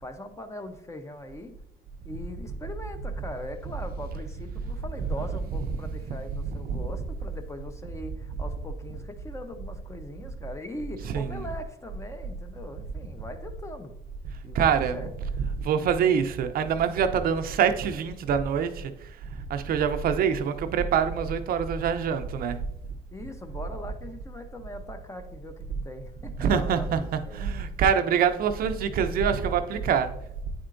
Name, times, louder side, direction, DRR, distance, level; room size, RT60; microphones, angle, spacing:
voice 1, 0.0-1.5 2.0-13.9 14.4-15.1 23.1-27.4, left 1 dB, 15° left, 7 dB, 0.7 m, -41 dB
voice 2, 5.0-5.9 6.4-6.9 11.0-11.5 14.5-22.6 26.4-30.1, right 7 dB, 60° right, 8 dB, 0.5 m, -26 dB
9.3 x 4.4 x 2.5 m, 0.79 s
cardioid pair, 110°, 17 cm